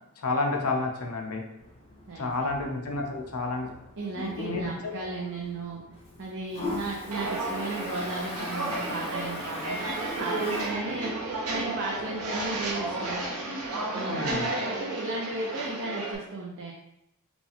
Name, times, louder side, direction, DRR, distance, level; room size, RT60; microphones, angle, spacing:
voice 1, 0.2-1.4 2.1-3.7 4.2-5.0 14.0-14.5, left 3 dB, 75° left, 2 dB, 0.7 m, -30 dB
Toilet flush, 1.6-13.1, left 2 dB, 25° left, 0.8 m, -42 dB
voice 2, 2.1-2.7 4.0-5.8 6.2-11.1 11.5-13.3 13.9-16.7, right 2 dB, 60° right, -2 dB, 0.6 m, -35 dB
Walk footsteps, 7.1-16.1, right 2 dB, 75° right, 0.9 m, -33 dB
5.1 x 2.4 x 3.4 m, 0.82 s
head